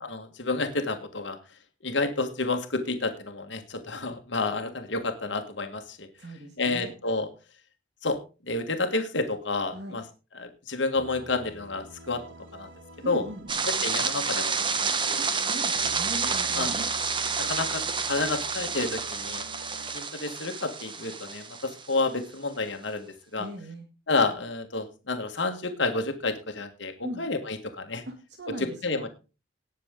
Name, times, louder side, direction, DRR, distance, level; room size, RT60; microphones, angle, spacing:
voice 1, 0.0-1.4 1.8-6.1 6.6-7.3 8.0-8.2 8.5-10.0 10.3-12.2 12.5-12.7 13.1-13.2 13.7-15.2 16.2-16.7 17.4-19.5 19.9-23.5 24.1-28.0 28.6-29.1, left 3 dB, 70° left, 5 dB, 1.7 m, -30 dB
voice 2, 6.2-6.9 9.7-10.0 13.0-13.7 15.1-16.9 23.4-23.9 27.0-27.2 28.0-29.1, right 1 dB, 60° right, 2 dB, 2.3 m, -39 dB
sound 1, 10.9-20.0, right 2 dB, 85° right, 1.5 m, -48 dB
sound 2, 13.5-22.0, right 5 dB, 25° right, 1.2 m, -29 dB
18.5 x 7.1 x 3.7 m, 0.31 s
head